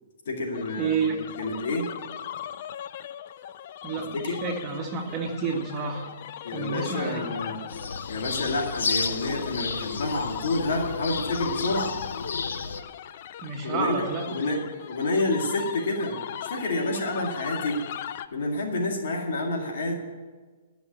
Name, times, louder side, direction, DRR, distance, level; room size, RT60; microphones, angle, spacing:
voice 1, 0.3-1.0 1.4-1.9 4.1-4.4 6.4-7.6 8.1-11.9 13.6-17.8 18.3-20.0, left 2 dB, 75° left, 1 dB, 2.1 m, -29 dB
sound 1, 0.5-18.3, left 10 dB, 50° left, 0.4 m, -39 dB
voice 2, 0.8-1.2 3.8-6.1 6.5-7.2 13.4-14.5, right 5 dB, 25° right, 1 dB, 1.7 m, -30 dB
sound 2, 7.7-12.8, left 5 dB, 90° left, 0.7 m, -32 dB
13.0 x 5.8 x 8.2 m, 1.4 s
hypercardioid pair, 150°, 0 cm